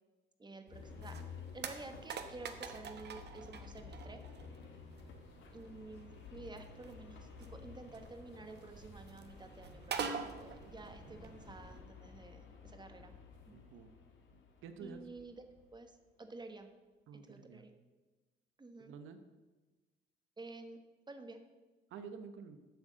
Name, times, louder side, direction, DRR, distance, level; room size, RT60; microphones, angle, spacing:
voice 1, 0.4-1.2 1.5-4.2 5.5-13.1 13.5-13.6 14.8-15.4 15.7-16.7 17.2-17.7 18.6-18.9 20.4-20.8 21.1-21.4, right 3 dB, 20° right, 7 dB, 1.2 m, -51 dB
sound 1, 0.7-15.9, left 6 dB, 75° left, 1.7 m, -54 dB
sound 2, 0.7-11.8, right 6 dB, 60° right, 1.0 m, -47 dB
voice 2, 13.5-13.9 14.3-15.0 17.1-17.7 18.8-19.2 21.9-22.6, right 6 dB, 85° right, 9 dB, 0.9 m, -50 dB
8.1 x 6.3 x 7.4 m, 1.2 s
cardioid pair, 90°, 20 cm